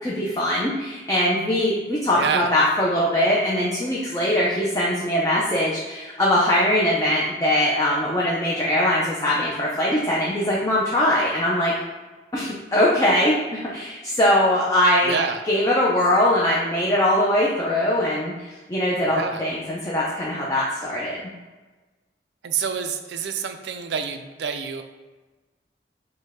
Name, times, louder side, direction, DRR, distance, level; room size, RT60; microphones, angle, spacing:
voice 1, 0.0-11.7 12.3-15.2 15.5-21.2, left 1 dB, 20° left, -5 dB, 0.5 m, -21 dB
voice 2, 2.2-2.5 15.0-15.4 19.0-19.4 22.4-24.8, right 6 dB, 80° right, 7 dB, 0.4 m, -27 dB
5.2 x 2.2 x 3.5 m, 1.3 s
head